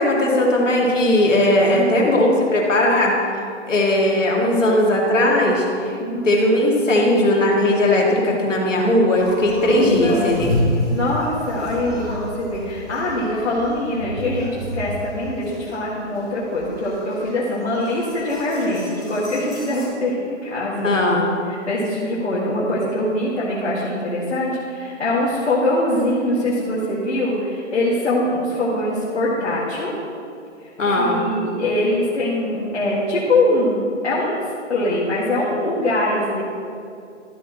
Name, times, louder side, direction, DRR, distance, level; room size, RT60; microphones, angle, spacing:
voice 1, 0.0-6.0 6.2-10.8 20.8-21.2 30.8-31.2, left 1 dB, 80° left, -2 dB, 2.5 m, -18 dB
voice 2, 1.7-2.1 6.0-6.3 10.0-10.3 10.9-21.1 21.5-29.9 30.6-30.7 31.0-34.4 34.7-36.4, left 1 dB, 65° left, -7 dB, 2.1 m, -23 dB
sound 1, 9.1-19.8, left 1 dB, ahead, 0.7 m, -29 dB
13.0 x 8.2 x 3.1 m, 2.4 s
hypercardioid pair, 180°, 37 cm